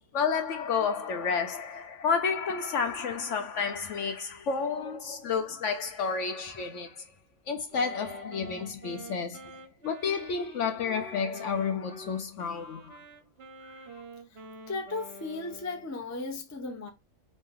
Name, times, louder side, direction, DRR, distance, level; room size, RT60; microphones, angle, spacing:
voice 1, 0.1-7.0 7.5-9.5 9.8-13.0, left 5 dB, 65° left, 0.8 m, -31 dB
Wind instrument woodwind instrument, 7.7-15.9, right 1 dB, 50° right, 0.8 m, -48 dB
voice 2, 13.6-14.0 14.7-16.9, left 3 dB, 20° left, 0.4 m, -36 dB
4.1 x 2.6 x 3.6 m
omnidirectional pair, 1.6 m